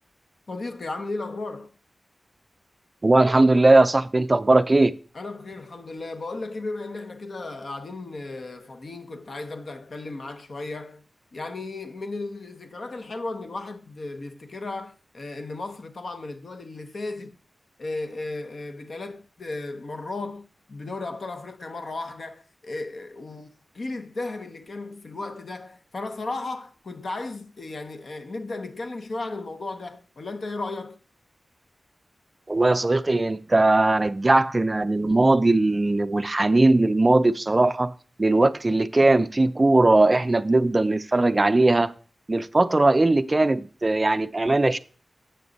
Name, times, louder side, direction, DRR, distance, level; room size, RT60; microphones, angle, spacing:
voice 1, 0.5-1.7 5.1-11.0 11.3-17.4 17.8-23.5 23.7-31.0, left 2 dB, 60° left, 0.7 m, -35 dB
voice 2, 3.0-4.9 32.5-37.9 38.2-41.9 42.3-44.8, right 2 dB, 25° right, 0.3 m, -19 dB
7.8 x 6.0 x 4.0 m
wide cardioid pair, 115°, 0 cm